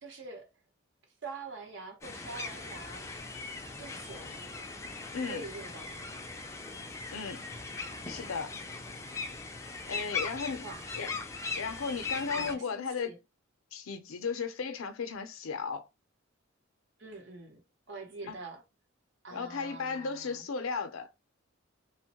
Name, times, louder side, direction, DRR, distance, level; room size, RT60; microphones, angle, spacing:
voice 1, 0.0-0.5 1.2-3.1 3.8-4.5 5.3-6.3 7.9-9.3 10.6-11.0 12.3-13.2 17.0-18.6 19.2-20.5, right 3 dB, 60° right, 0.8 m, -46 dB
sound 1, 2.0-12.5, left 4 dB, 15° left, 0.4 m, -39 dB
voice 2, 5.1-5.4 7.1-7.5 8.1-8.5 9.9-10.7 10.9-11.1 11.6-13.1 13.7-15.9 18.2-18.4 19.3-21.1, left 5 dB, 80° left, 0.5 m, -35 dB
3.0 x 2.1 x 2.8 m
head